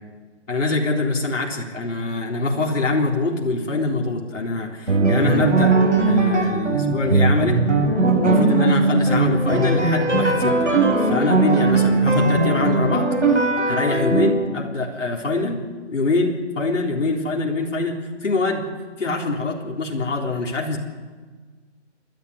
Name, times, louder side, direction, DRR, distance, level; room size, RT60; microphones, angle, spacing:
voice 1, 0.5-5.8 6.1-7.6 8.2-18.7 19.0-20.8, left 3 dB, 90° left, -1 dB, 3.9 m, -24 dB
sound 1, 4.9-14.3, right 3 dB, 75° right, 7.9 m, -19 dB
28.0 x 12.0 x 9.7 m, 1.4 s
hypercardioid pair, 175°, 36 cm